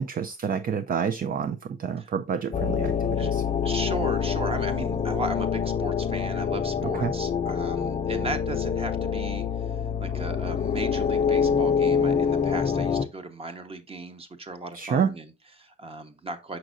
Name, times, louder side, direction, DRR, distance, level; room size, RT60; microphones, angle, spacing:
voice 1, 0.0-3.4 7.0-7.1 14.7-15.1, right 7 dB, 45° right, 0.5 m, -28 dB
sound 1, 2.5-13.0, left 7 dB, 30° left, 0.6 m, -26 dB
voice 2, 3.6-16.6, right 2 dB, 30° right, 1.2 m, -36 dB
6.4 x 5.9 x 2.5 m
cardioid pair, 90°, 20 cm